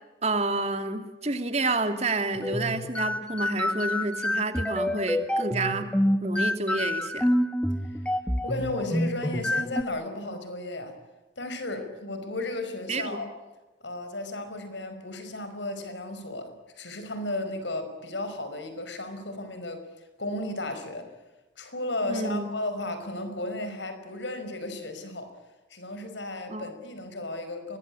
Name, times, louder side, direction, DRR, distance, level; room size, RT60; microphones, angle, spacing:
voice 1, 0.2-5.9 6.2-7.3 12.9-13.2 22.1-22.5 26.5-26.7, right 3 dB, 35° right, 7 dB, 2.7 m, -29 dB
sound 1, 2.3-9.8, left 1 dB, 5° left, 1.2 m, -27 dB
voice 2, 8.4-11.0 11.4-13.3 13.8-21.1 21.6-25.3 25.7-27.8, left 2 dB, 75° left, 8 dB, 5.2 m, -34 dB
23.5 x 20.5 x 9.8 m, 1.1 s
head